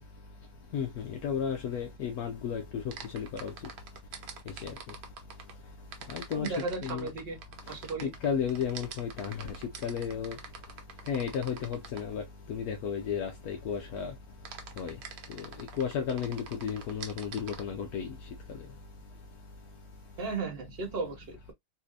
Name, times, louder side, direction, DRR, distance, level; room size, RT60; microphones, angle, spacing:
voice 1, 0.7-3.5 4.6-4.7 6.1-6.5 6.8-7.1 8.0-9.5 9.8-10.4 11.1-12.2 12.5-14.1 14.8-15.0 15.3-15.5 15.8-18.1, left 7 dB, 65° left, 1.0 m, -33 dB
sound 1, 2.9-5.5 5.9-12.1 14.4-17.6, right 6 dB, 85° right, 1.7 m, -45 dB
voice 2, 6.3-7.4 7.7-8.1 20.2-21.5, right 4 dB, 55° right, 0.6 m, -35 dB
4.2 x 2.7 x 2.4 m
omnidirectional pair, 2.2 m